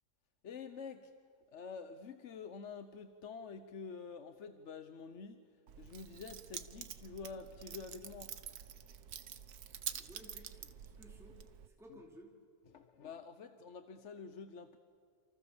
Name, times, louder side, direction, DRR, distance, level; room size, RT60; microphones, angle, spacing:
voice 1, 0.4-1.1 1.5-8.3 11.9-12.0 12.7-14.8, left 5 dB, 55° left, 9 dB, 1.2 m, -48 dB
Keys jangling, 5.7-11.7, right 9 dB, 90° right, 1.5 m, -47 dB
voice 2, 9.9-11.4 11.7-12.3, equal, ahead, -1 dB, 2.8 m, -57 dB
28.5 x 27.5 x 7.2 m, 2.2 s
omnidirectional pair, 1.6 m